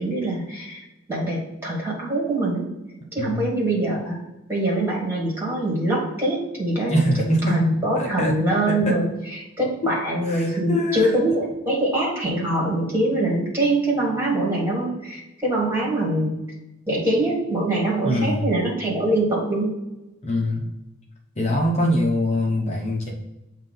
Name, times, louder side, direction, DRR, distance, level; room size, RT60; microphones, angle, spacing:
voice 1, 0.0-2.7 3.1-4.2 4.5-6.9 7.5-9.1 9.6-16.3 16.9-19.7, right 1 dB, 10° right, -4 dB, 2.0 m, -23 dB
voice 2, 6.9-7.7 8.0-8.4 8.7-9.0 9.8-9.9 10.2-11.2 18.0-18.5 20.2-20.7 21.4-23.1, equal, 35° left, -1 dB, 0.9 m, -23 dB
7.4 x 2.7 x 5.5 m, 0.97 s
head